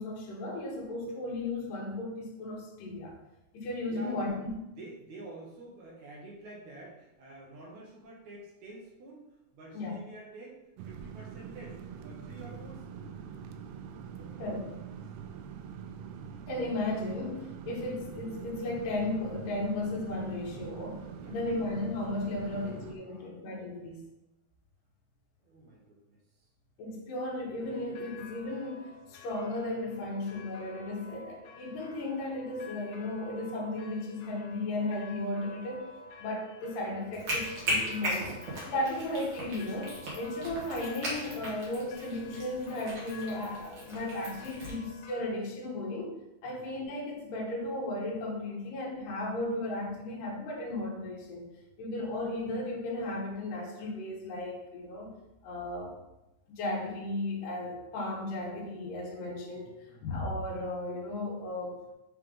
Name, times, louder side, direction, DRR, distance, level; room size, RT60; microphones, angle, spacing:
voice 1, 0.0-3.1 3.5-4.3 9.7-9.9 14.4-14.6 16.5-21.0 21.3-24.0 26.8-35.9 36.2-38.3 38.6-46.1 46.4-51.5 51.8-55.1 55.4-56.0 56.5-59.7 60.0-61.9, left 2 dB, 70° left, -3 dB, 2.5 m, -35 dB
voice 2, 3.9-4.4 4.7-9.3 9.5-13.2 14.1-14.6 14.8-15.0 21.1-21.5 22.4-23.8 25.4-26.5 46.4-46.9 48.5-48.7 59.5-60.2, right 2 dB, 65° right, -2 dB, 2.0 m, -49 dB
sound 1, 10.8-23.0, right 7 dB, 90° right, 2.5 m, -44 dB
sound 2, 27.6-45.3, left 4 dB, 85° left, 2.6 m, -51 dB
sound 3, 37.1-44.8, equal, 50° right, 1.7 m, -37 dB
7.8 x 3.3 x 3.7 m, 0.93 s
omnidirectional pair, 4.4 m